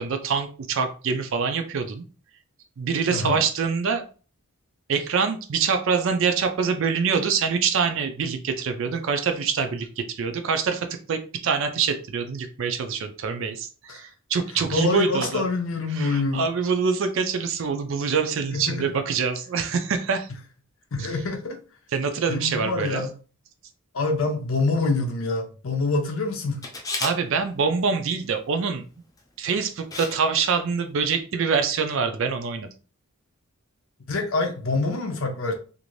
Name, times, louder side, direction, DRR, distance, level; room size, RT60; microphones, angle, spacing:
voice 1, 0.0-2.0 2.8-4.0 4.9-15.5 15.9-20.3 21.0-21.1 21.9-23.1 27.0-28.8 29.4-32.7, right 5 dB, 60° right, 0.4 m, -25 dB
voice 2, 3.1-3.4 13.9-14.0 14.7-16.5 18.5-18.8 20.9-21.6 22.3-23.1 23.9-26.6 34.1-35.5, left 3 dB, 65° left, 0.6 m, -26 dB
Camera, 26.6-27.2 29.2-29.4 29.9-30.2 30.5-30.6, left 3 dB, 15° left, 0.5 m, -31 dB
2.6 x 2.5 x 3.1 m
head